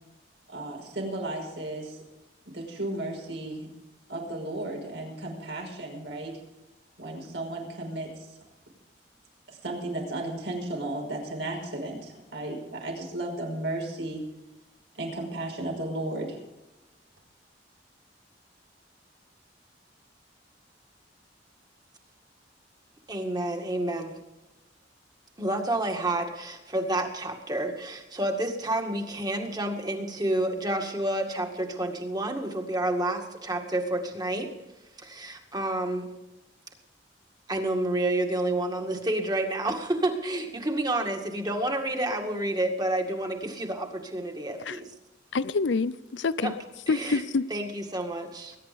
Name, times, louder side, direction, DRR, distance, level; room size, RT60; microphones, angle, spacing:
voice 1, 0.5-2.0 2.5-3.7 4.1-6.4 7.0-8.3 9.5-14.2 15.0-16.4, right 2 dB, 80° right, 5.7 m, -34 dB
voice 2, 23.1-24.2 25.4-34.5 35.0-36.1 37.5-44.9 46.4-46.5 46.9-47.2 47.5-48.6, right 1 dB, 20° right, 2.0 m, -29 dB
voice 3, 45.3-46.5 46.9-47.5, left 4 dB, 85° left, 0.6 m, -27 dB
21.5 x 10.5 x 5.2 m
head